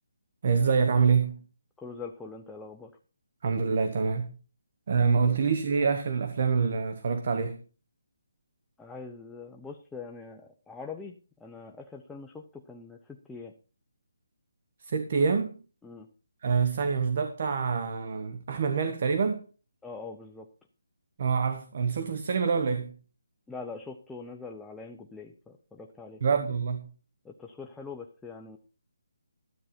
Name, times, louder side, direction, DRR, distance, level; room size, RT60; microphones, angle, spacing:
voice 1, 0.4-1.4 3.4-4.4 4.9-7.6 14.8-15.6 16.4-19.4 21.2-22.9 26.2-26.9, right 5 dB, 40° right, 1.1 m, -26 dB
voice 2, 1.8-2.9 5.3-5.4 8.8-13.5 15.8-16.1 19.8-20.5 23.5-26.2 27.2-28.6, left 4 dB, 5° left, 0.6 m, -43 dB
12.5 x 9.0 x 4.3 m
hypercardioid pair, 175°, 0 cm